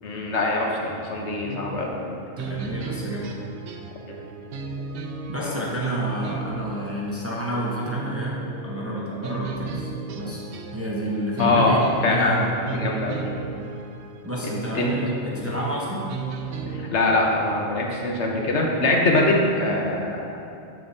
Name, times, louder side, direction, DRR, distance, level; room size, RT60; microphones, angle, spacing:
voice 1, 0.0-1.9 4.1-4.2 5.4-5.7 11.4-11.8 12.0-12.4 12.7-13.3 14.7-14.9 15.2-15.5 16.6-20.4, left 2 dB, 85° left, -1 dB, 1.2 m, -23 dB
sound 1, 1.4-16.9, right 4 dB, 80° right, 0.9 m, -35 dB
voice 2, 2.4-3.3 5.3-9.9 10.1-10.4 10.7-12.5 12.7-12.9 14.2-16.1, equal, 15° right, -5 dB, 0.8 m, -29 dB
7.9 x 7.1 x 2.7 m, 2.6 s
omnidirectional pair, 1.2 m